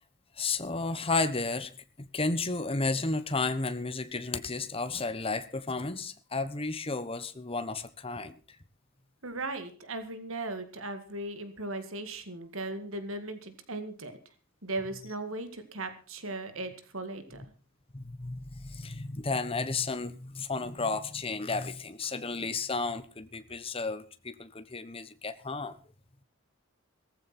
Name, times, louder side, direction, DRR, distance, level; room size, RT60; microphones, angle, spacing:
voice 1, 0.4-1.7 2.1-8.3 17.9-25.7, left 3 dB, 25° left, 1.2 m, -32 dB
voice 2, 9.2-14.3 14.6-17.4, right 2 dB, 65° right, 2.2 m, -37 dB
17.5 x 15.0 x 4.4 m
head